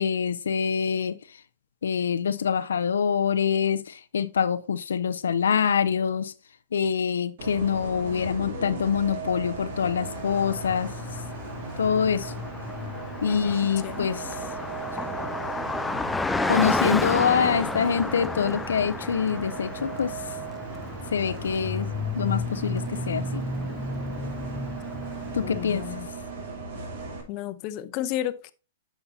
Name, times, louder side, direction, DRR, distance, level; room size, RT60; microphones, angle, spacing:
voice 1, 0.0-1.4 1.8-6.3 6.7-10.9 11.8-12.3 13.2-14.4 16.4-20.4 21.1-23.4 25.3-25.9, left 7 dB, 85° left, 0.5 m, -25 dB
Bus, 7.4-27.2, right 4 dB, 70° right, 2.8 m, -37 dB
Car passing by, 9.9-25.9, left 3 dB, 10° left, 0.4 m, -32 dB
voice 2, 13.2-13.6 13.8-14.1 25.4-26.1 27.3-28.5, left 13 dB, 45° left, 0.7 m, -32 dB
10.0 x 5.7 x 2.7 m
hypercardioid pair, 120°, 0 cm